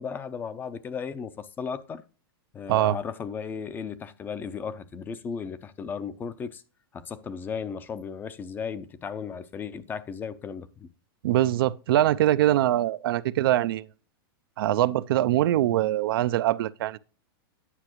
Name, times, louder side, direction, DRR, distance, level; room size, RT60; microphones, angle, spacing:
voice 1, 0.0-2.0 2.5-6.6 6.9-10.9, left 6 dB, 15° left, 0.5 m, -35 dB
voice 2, 11.2-13.9 14.6-17.0, right 13 dB, 70° right, 0.4 m, -23 dB
9.8 x 5.8 x 3.0 m
supercardioid pair, 150°, 13 cm